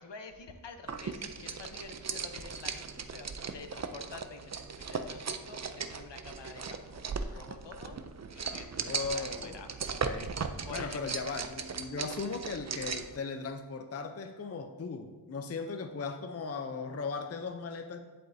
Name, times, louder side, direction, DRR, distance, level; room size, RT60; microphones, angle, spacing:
voice 1, 0.0-8.0 8.3-10.0 10.6-11.2, left 4 dB, 60° left, 6 dB, 0.8 m, -48 dB
sound 1, 0.9-13.2, right 5 dB, 35° right, 0.5 m, -38 dB
voice 2, 8.9-9.6 10.1-10.3 10.7-18.0, left 4 dB, 30° left, 6 dB, 0.5 m, -37 dB
7.9 x 7.6 x 2.7 m, 1.4 s
wide cardioid pair, 50°, 48 cm